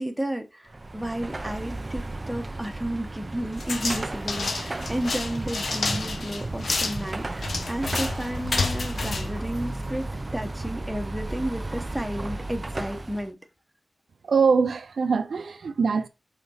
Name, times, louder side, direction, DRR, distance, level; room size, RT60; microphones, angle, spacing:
voice 1, 0.0-10.1 10.3-13.4, right 1 dB, 5° right, 0.8 m, -32 dB
Car passing by / Traffic noise roadway noise / Engine, 0.7-13.3, right 2 dB, 25° right, 0.3 m, -34 dB
sound 1, 3.6-10.1, left 3 dB, 60° left, 0.8 m, -30 dB
voice 2, 14.2-16.1, right 5 dB, 75° right, 0.6 m, -23 dB
5.8 x 3.9 x 4.1 m
wide cardioid pair, 135°, 0 cm